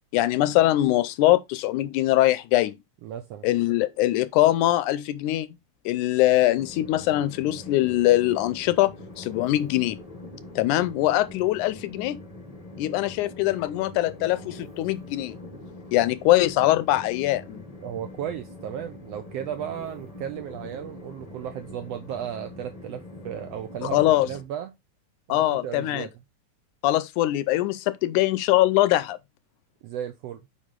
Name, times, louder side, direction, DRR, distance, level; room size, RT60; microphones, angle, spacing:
voice 1, 0.1-2.8 3.4-5.5 5.9-10.0 10.6-12.2 12.8-15.4 15.9-17.6 23.8-24.3 25.3-26.1 26.8-29.2, left 15 dB, 85° left, 2.1 m, -22 dB
voice 2, 3.0-3.5 17.8-24.7 25.3-26.1 29.8-30.4, right 10 dB, 80° right, 1.4 m, -35 dB
Train, 6.6-24.4, left 2 dB, 40° left, 0.5 m, -43 dB
6.5 x 5.3 x 3.6 m
omnidirectional pair, 3.5 m